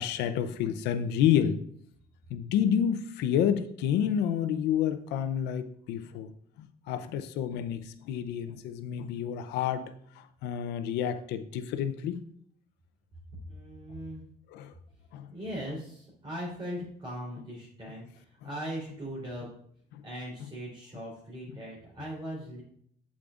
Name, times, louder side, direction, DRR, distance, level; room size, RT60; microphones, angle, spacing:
voice 1, 0.0-1.6 2.3-6.3 6.6-9.9 10.1-12.2 14.5-14.7 15.1-15.3 19.9-20.0, left 9 dB, 90° left, 11 dB, 0.7 m, -29 dB
voice 2, 13.5-14.2 15.3-19.5 20.0-22.6, equal, 30° right, -7 dB, 3.6 m, -39 dB
8.5 x 8.4 x 2.5 m, 0.64 s
cardioid pair, 110°, 17 cm